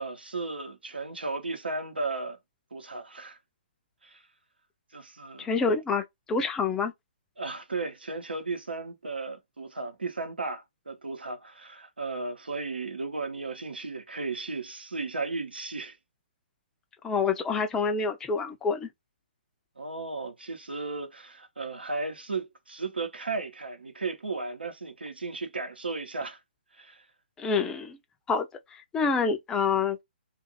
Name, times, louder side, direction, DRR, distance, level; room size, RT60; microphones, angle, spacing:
voice 1, 0.0-2.4 2.7-3.4 4.0-4.2 4.9-5.8 7.4-16.0 19.8-26.4 26.7-27.0, right 3 dB, 75° right, 0.8 m, -35 dB
voice 2, 5.4-6.9 17.0-18.9 27.4-28.0 28.3-28.5 28.7-30.0, left 5 dB, 10° left, 0.4 m, -27 dB
2.5 x 2.5 x 2.9 m
figure-of-eight pair, 130°, 6 cm